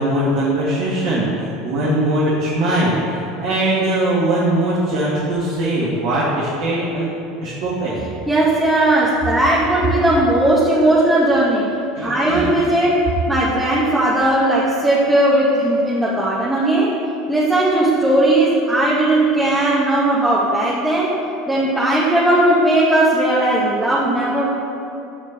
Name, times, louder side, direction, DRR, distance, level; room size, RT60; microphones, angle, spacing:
voice 1, 0.0-7.1 7.4-8.0 12.0-12.6, right 1 dB, 65° right, -7 dB, 2.6 m, -20 dB
voice 2, 8.3-11.7 12.0-16.9 17.3-21.2 21.5-24.5, right 1 dB, 5° right, -7 dB, 2.1 m, -17 dB
15.5 x 5.3 x 6.9 m, 2.8 s
figure-of-eight pair, 75°, 0 cm